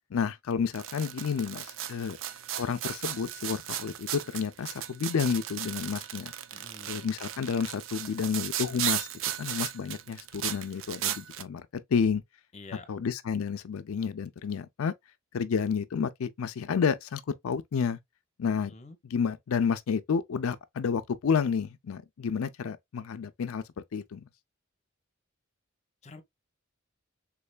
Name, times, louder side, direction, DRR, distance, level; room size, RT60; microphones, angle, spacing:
voice 1, 0.1-2.2 2.6-6.3 6.9-9.1 9.4-11.7 11.9-12.2 12.9-14.9 15.3-18.0 18.4-18.7 19.0-23.6 23.9-24.3, left 6 dB, 80° left, 0.4 m, -30 dB
sound 1, 0.7-11.4, right 11 dB, 65° right, 0.4 m, -36 dB
voice 2, 6.5-7.0 12.5-12.9 18.6-19.0 26.0-26.2, left 3 dB, 30° left, 0.7 m, -47 dB
3.6 x 3.3 x 2.3 m
head